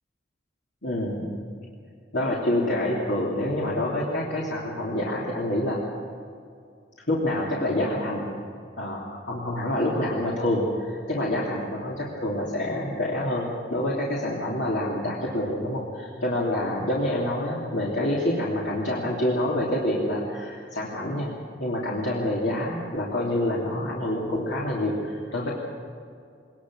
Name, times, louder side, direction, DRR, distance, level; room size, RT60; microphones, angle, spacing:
voice 1, 0.8-1.4 2.1-5.8 7.1-8.3 8.8-21.3 21.6-25.5, left 1 dB, 70° left, -5 dB, 3.1 m, -27 dB
22.0 x 20.0 x 6.4 m, 2.4 s
head